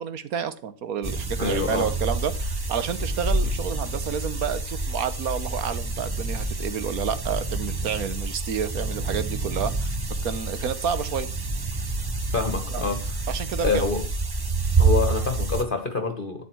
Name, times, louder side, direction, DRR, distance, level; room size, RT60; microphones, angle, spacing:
voice 1, 0.0-9.9 10.2-11.3 12.7-12.9 13.3-13.9, right 7 dB, 90° right, 13 dB, 1.5 m, -30 dB
sound 1, 1.0-15.6, right 3 dB, 20° right, 0.7 m, -28 dB
voice 2, 1.4-1.9 12.3-13.2 13.6-14.0 14.8-16.4, left 4 dB, 40° left, 7 dB, 1.4 m, -26 dB
12.0 x 9.0 x 4.6 m, 0.38 s
omnidirectional pair, 1.5 m